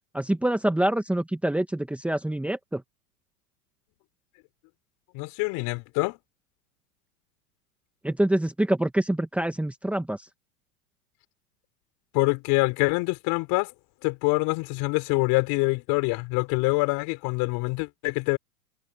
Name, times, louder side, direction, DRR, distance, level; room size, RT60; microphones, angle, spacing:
voice 1, 0.1-2.8 8.0-10.3, right 1 dB, 5° right, 2.0 m, -26 dB
voice 2, 5.1-6.2 12.1-13.7 14.0-18.4, left 26 dB, 45° left, 4.6 m, -25 dB
hypercardioid pair, 120°, 45 cm